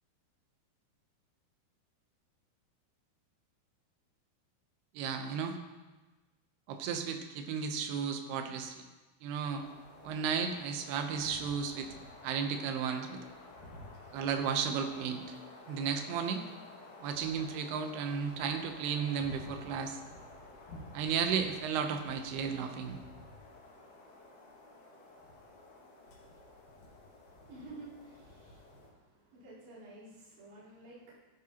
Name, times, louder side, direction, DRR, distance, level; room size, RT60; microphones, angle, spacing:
voice 1, 4.9-5.6 6.7-8.8 9.2-9.6 10.0-11.9 12.2-13.2 14.1-15.2 15.7-16.4 17.0-20.0 20.9-23.0, right 6 dB, 75° right, 6 dB, 2.6 m, -34 dB
sound 1, 9.4-28.9, left 2 dB, 55° left, 2.9 m, -52 dB
voice 2, 27.3-31.2, right 2 dB, 40° right, -11 dB, 5.1 m, -52 dB
15.0 x 12.0 x 2.9 m, 1.2 s
omnidirectional pair, 5.3 m